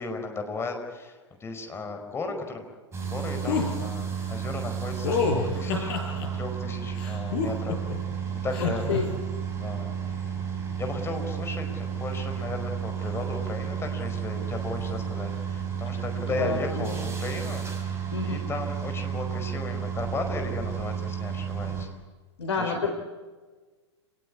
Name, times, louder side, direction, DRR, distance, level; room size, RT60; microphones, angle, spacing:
voice 1, 0.0-2.6 3.0-5.9 6.4-7.8 8.4-8.9 9.5-10.3 10.8-18.0 18.2-21.9 22.6-22.9, left 3 dB, 15° left, 5 dB, 5.0 m, -35 dB
sound 1, 2.9-21.9, right 7 dB, 15° right, 6.0 m, -32 dB
sound 2, 3.4-3.7 5.0-6.3 7.0-8.0 8.5-9.0, left 5 dB, 50° left, 6.8 m, -27 dB
voice 2, 16.4-17.0 18.1-18.4 22.4-22.9, left 4 dB, 70° left, 4 dB, 3.6 m, -29 dB
29.0 x 19.5 x 9.7 m, 1.4 s
figure-of-eight pair, 105°, 15 cm